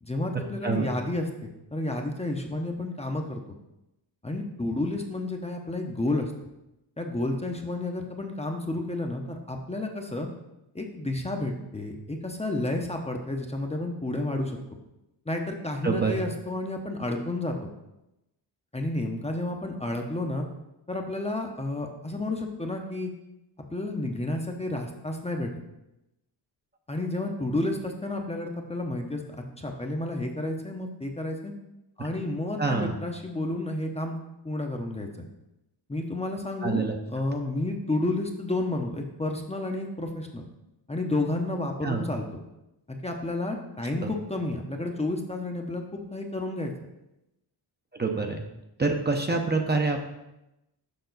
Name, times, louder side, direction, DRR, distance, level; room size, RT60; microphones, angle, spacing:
voice 1, 0.0-3.4 4.2-6.3 7.0-10.3 10.7-14.6 15.3-17.7 18.7-20.5 20.9-23.1 23.7-25.5 26.9-29.2 29.6-31.5 32.0-34.2 34.4-35.3 35.9-40.5 40.9-42.3 42.9-46.7, left 2 dB, 15° left, 2 dB, 0.8 m, -31 dB
voice 2, 15.8-16.2 32.6-32.9 36.6-36.9 41.8-42.1 44.0-44.1 48.0-48.4 48.8-50.1, right 3 dB, 25° right, 3 dB, 0.8 m, -26 dB
6.9 x 5.4 x 4.0 m, 0.92 s
cardioid pair, 85°, 45 cm